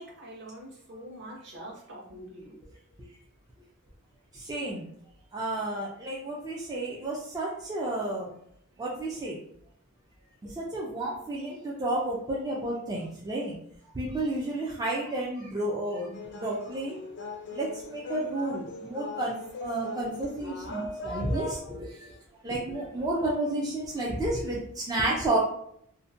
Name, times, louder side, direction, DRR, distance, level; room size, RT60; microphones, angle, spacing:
voice 1, 0.0-2.6, right 1 dB, 50° right, -3 dB, 0.8 m, -44 dB
voice 2, 4.3-4.8 5.3-8.3 8.8-9.4 10.4-13.5 13.9-16.9 17.5-22.1 22.4-25.4, right 1 dB, 15° right, -4 dB, 0.3 m, -31 dB
sound 1, 16.1-21.6, left 2 dB, 55° left, 0.4 m, -39 dB
2.6 x 2.1 x 2.5 m, 0.69 s
head